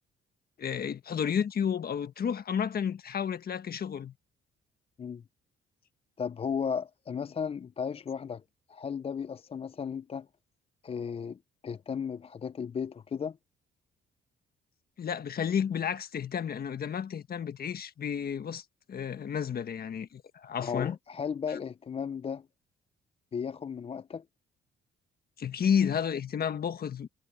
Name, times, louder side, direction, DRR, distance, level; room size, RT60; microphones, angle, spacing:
voice 1, 0.6-4.1 15.0-20.9 21.5-21.6 25.4-27.1, left 8 dB, 50° left, 1.6 m, -31 dB
voice 2, 6.2-8.4 8.7-10.3 10.8-13.4 20.6-22.5 23.3-24.2, left 6 dB, 30° left, 0.4 m, -35 dB
cardioid pair, 90°, 20 cm